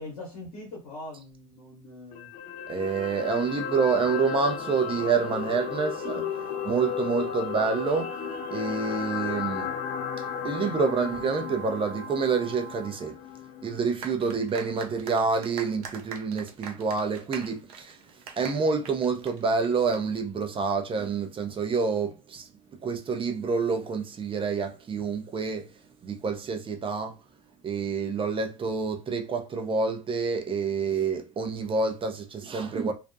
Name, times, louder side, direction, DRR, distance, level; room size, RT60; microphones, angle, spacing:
voice 1, 0.0-2.3, left 2 dB, 80° left, 0.9 m, -42 dB
sound 1, 2.1-14.4 14.8-14.9, left 9 dB, 45° left, 0.4 m, -35 dB
voice 2, 2.7-8.2 8.5-9.7 10.4-13.1 13.6-18.0 18.4-22.5 22.8-25.7 26.0-27.1 27.6-32.9, right 5 dB, 30° right, 0.5 m, -28 dB
sound 2, 2.8-12.9, right 10 dB, 45° right, 1.0 m, -44 dB
sound 3, 14.0-20.0, right 6 dB, 80° right, 0.5 m, -42 dB
2.4 x 2.1 x 2.5 m
hypercardioid pair, 75°, 19 cm